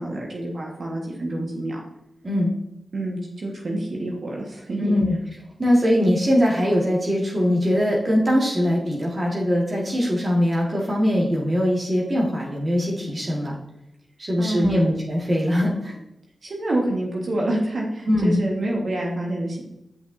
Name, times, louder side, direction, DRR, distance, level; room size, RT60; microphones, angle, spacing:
voice 1, 0.0-1.8 2.9-5.0 14.4-14.8 16.4-19.6, right 1 dB, 70° right, -2 dB, 1.4 m, -27 dB
voice 2, 4.8-5.2 5.6-13.6 14.2-15.9 18.1-18.4, equal, 50° right, -3 dB, 1.7 m, -21 dB
8.9 x 5.6 x 2.7 m, 0.87 s
cardioid pair, 40°, 0 cm